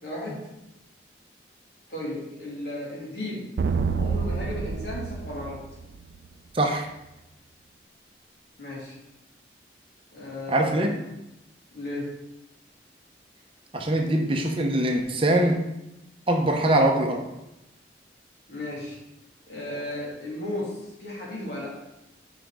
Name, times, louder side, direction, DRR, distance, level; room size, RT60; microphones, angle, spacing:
voice 1, 0.0-0.4 1.9-3.5 3.9-5.6 8.6-9.0 10.1-11.0 11.7-12.1 18.5-19.0 19.5-21.7, left 1 dB, 65° left, -5 dB, 2.6 m, -35 dB
sound 1, 3.6-6.3, right 5 dB, 60° right, 0.4 m, -28 dB
voice 2, 6.5-6.9 10.5-10.9 13.7-15.6 16.3-17.3, right 1 dB, 30° right, 3 dB, 0.7 m, -22 dB
5.8 x 4.9 x 4.8 m, 0.89 s
head